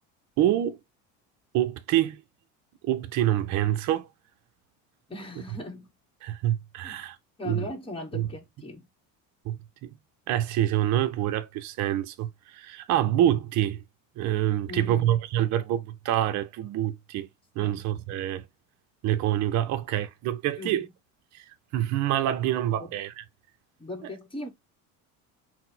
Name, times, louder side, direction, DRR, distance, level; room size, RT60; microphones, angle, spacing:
voice 1, 0.4-0.8 1.5-2.2 2.8-4.1 6.2-7.2 7.4-7.7 8.1-8.3 9.4-9.9 10.3-13.8 14.2-17.3 17.6-18.4 19.0-20.9 21.3-23.2, right 12 dB, 50° right, 0.5 m, -26 dB
voice 2, 5.1-5.9 6.8-7.0 7.4-8.9 14.7-15.2 17.6-17.9 20.6-20.9 22.8-22.9 23.8-24.5, left 2 dB, 15° left, 1.1 m, -38 dB
4.0 x 2.1 x 4.1 m
supercardioid pair, 105°, 38 cm